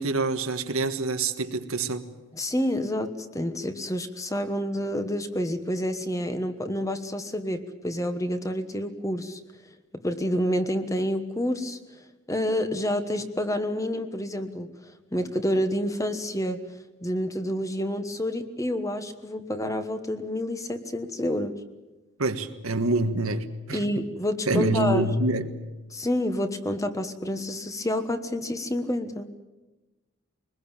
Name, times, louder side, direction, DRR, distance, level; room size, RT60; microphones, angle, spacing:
voice 1, 0.0-2.0 22.2-23.8 24.5-25.5, right 2 dB, 90° right, 7 dB, 1.7 m, -26 dB
voice 2, 2.3-9.4 9.9-11.8 12.3-14.7 15.1-16.6 17.0-21.5 23.7-25.1 25.9-29.3, left 1 dB, 15° left, 9 dB, 1.3 m, -28 dB
23.5 x 20.5 x 9.0 m, 1.1 s
head